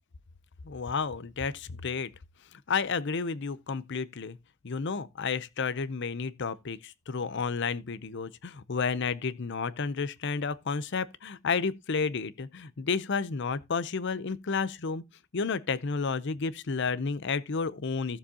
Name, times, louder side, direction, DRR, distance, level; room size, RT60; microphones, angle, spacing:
voice 1, 0.6-2.1 2.5-4.4 4.6-15.0 15.3-18.2, left 5 dB, 60° left, 0.6 m, -31 dB
15.5 x 7.1 x 2.8 m
head